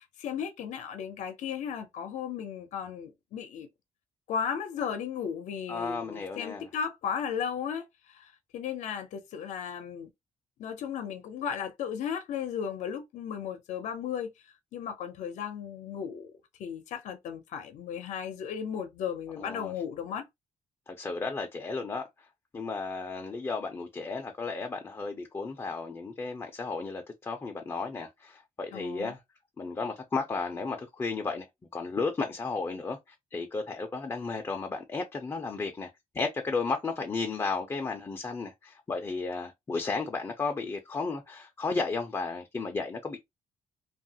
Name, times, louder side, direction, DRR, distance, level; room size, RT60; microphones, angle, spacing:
voice 1, 0.0-3.7 4.3-10.1 10.6-14.3 14.7-16.3 16.6-20.3 28.7-29.1, left 7 dB, 75° left, 0.6 m, -35 dB
voice 2, 5.7-6.7 19.4-19.7 20.9-22.1 22.5-29.2 29.6-31.5 31.7-35.9 36.1-43.2, left 4 dB, 20° left, 0.4 m, -33 dB
2.8 x 2.3 x 2.7 m
cardioid pair, 135°, 12 cm